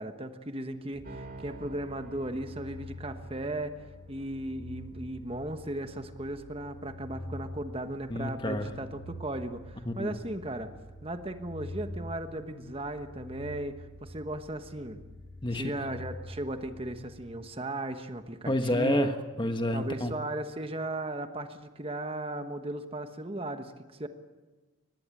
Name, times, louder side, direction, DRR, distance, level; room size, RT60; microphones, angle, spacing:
voice 1, 0.0-3.7 4.1-10.7 11.0-15.0 15.5-19.1 19.7-24.1, right 1 dB, 30° right, 8 dB, 1.2 m, -36 dB
sound 1, 0.9-17.8, left 1 dB, 80° left, 5.3 m, -46 dB
sound 2, 1.0-6.0, right 2 dB, 45° right, 3.3 m, -50 dB
voice 2, 8.1-8.7 9.8-10.1 15.4-15.7 18.5-20.1, left 1 dB, 25° left, 7 dB, 1.4 m, -29 dB
23.5 x 20.0 x 9.0 m, 1.3 s
head